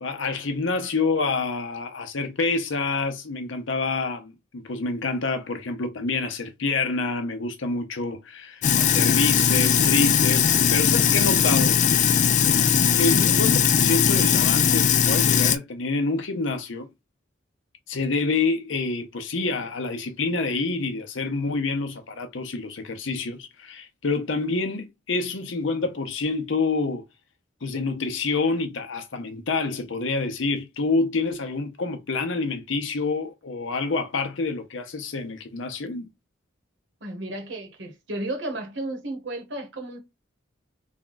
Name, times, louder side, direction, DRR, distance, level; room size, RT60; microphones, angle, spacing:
voice 1, 0.0-11.9 13.0-16.9 17.9-27.0 27.6-36.1, left 3 dB, 80° left, 0.7 m, -27 dB
Sink (filling or washing), 8.6-15.6, left 7 dB, 40° left, 0.3 m, -19 dB
voice 2, 37.0-40.0, right 1 dB, 65° right, 1.2 m, -33 dB
3.5 x 2.3 x 3.9 m
head